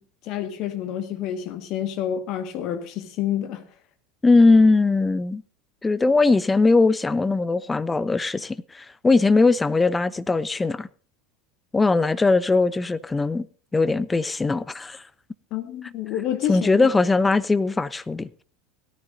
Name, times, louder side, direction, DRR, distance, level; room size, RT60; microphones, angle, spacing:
voice 1, 0.3-3.6 15.5-16.9, left 10 dB, 45° left, 1.8 m, -28 dB
voice 2, 4.2-5.4 5.8-10.9 11.7-13.5 13.7-15.0 16.5-18.3, left 3 dB, 15° left, 0.6 m, -20 dB
17.5 x 13.5 x 2.8 m
figure-of-eight pair, 75°, 0 cm